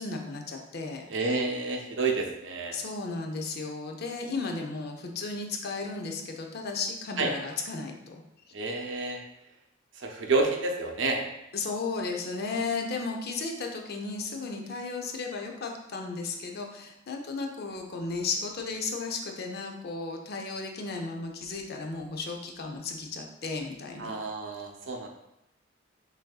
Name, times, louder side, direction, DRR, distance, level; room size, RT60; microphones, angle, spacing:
voice 1, 0.0-1.1 2.7-8.2 11.5-24.2, left 3 dB, 50° left, 2 dB, 0.5 m, -34 dB
voice 2, 1.1-2.8 7.2-7.3 8.5-9.2 9.9-11.3 24.0-25.1, right 3 dB, 65° right, 2 dB, 0.6 m, -29 dB
6.2 x 2.7 x 2.3 m, 0.85 s
head